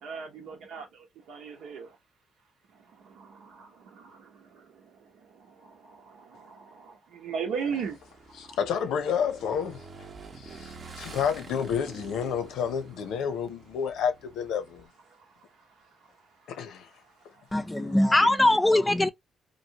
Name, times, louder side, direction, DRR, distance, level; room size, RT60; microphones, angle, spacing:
voice 1, 0.0-2.0 3.0-8.0 8.5-8.6 18.2-18.3, right 6 dB, 80° right, 1.1 m, -38 dB
Motorcycle / Engine, 7.8-14.9, right 4 dB, 45° right, 0.8 m, -47 dB
voice 2, 8.4-9.8 10.4-14.9 16.5-16.9, left 7 dB, 80° left, 0.6 m, -30 dB
voice 3, 17.5-19.1, left 1 dB, 15° left, 0.5 m, -21 dB
3.0 x 2.6 x 2.8 m
cardioid pair, 90°, 0 cm